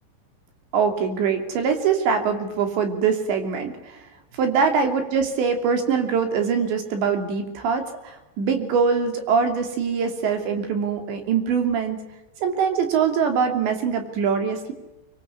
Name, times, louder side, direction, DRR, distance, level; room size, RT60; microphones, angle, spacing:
voice 1, 0.7-4.0 4.4-12.0 12.4-14.7, right 6 dB, 70° right, 6 dB, 5.0 m, -23 dB
25.0 x 22.5 x 9.6 m, 1.0 s
omnidirectional pair, 5.3 m